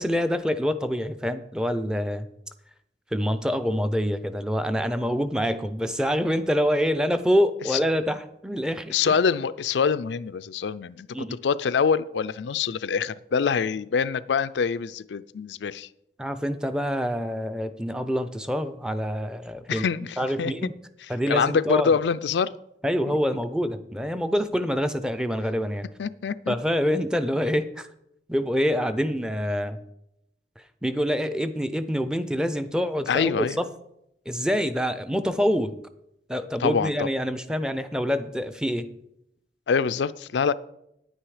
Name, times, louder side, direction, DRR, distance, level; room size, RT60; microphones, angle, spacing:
voice 1, 0.0-2.3 3.1-9.2 11.1-11.4 16.2-19.8 20.2-20.7 21.1-21.9 22.8-25.9 26.5-27.9 28.3-29.8 30.8-33.7 34.3-35.8 36.3-38.9, equal, 5° right, 0.5 m, -26 dB
voice 2, 8.9-11.1 11.4-15.9 19.7-20.5 21.3-22.5 26.0-26.5 33.1-33.6 36.6-37.1 39.7-40.5, left 6 dB, 90° left, 0.4 m, -25 dB
9.7 x 9.1 x 4.9 m
head